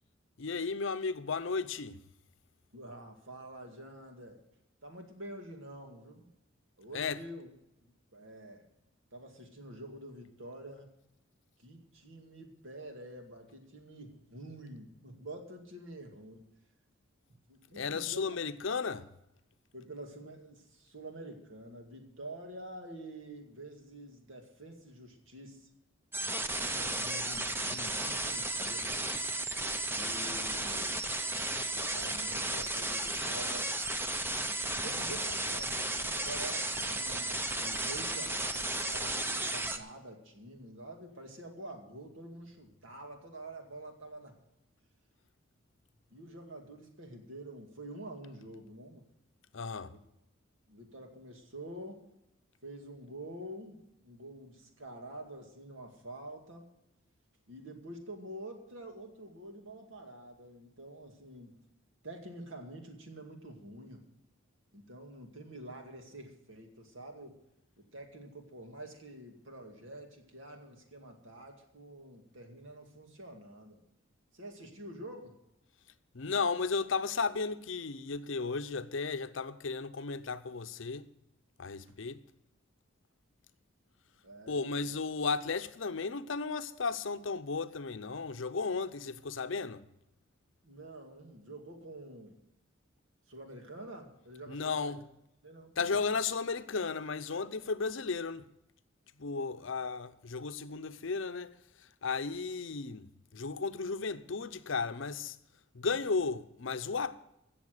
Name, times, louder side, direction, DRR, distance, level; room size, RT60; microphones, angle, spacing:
voice 1, 0.4-2.0 6.9-7.3 17.8-19.1 49.5-49.9 76.1-81.1 81.6-82.2 84.5-89.9 94.5-95.0 95.8-98.5 99.2-105.4 105.7-107.2, left 4 dB, 70° left, 0.7 m, -34 dB
voice 2, 2.7-4.4 4.8-6.3 6.8-7.5 7.8-8.7 9.1-10.9 11.6-16.5 17.5-18.4 19.7-25.7 26.5-28.9 29.9-31.1 31.7-33.7 34.8-44.4 46.1-49.0 49.8-50.0 50.7-52.0 52.6-56.7 57.5-61.6 62.0-64.0 64.7-67.4 67.8-73.8 74.3-75.4 84.2-85.0 90.6-92.4 93.3-94.9 95.4-96.1 99.7-99.8 103.8-103.9 105.8-105.9, right 1 dB, 70° right, 2.2 m, -47 dB
sound 1, 26.1-39.8, right 2 dB, 10° right, 0.6 m, -34 dB
16.0 x 7.1 x 6.6 m
head